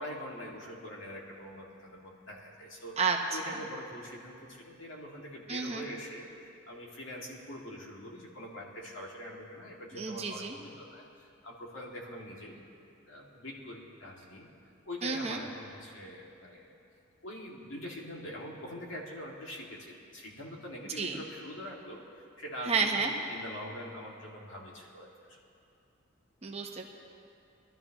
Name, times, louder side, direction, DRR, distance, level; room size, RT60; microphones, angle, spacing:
voice 1, 0.0-3.0 3.3-12.7 13.1-14.5 14.8-16.7 17.2-25.4, equal, 65° left, -3 dB, 2.1 m, -44 dB
voice 2, 3.0-3.6 5.5-5.8 9.9-10.6 15.0-15.4 21.0-21.2 22.7-23.1 26.4-26.9, right 5 dB, 30° right, 2 dB, 0.8 m, -31 dB
23.5 x 12.5 x 3.0 m, 2.5 s
head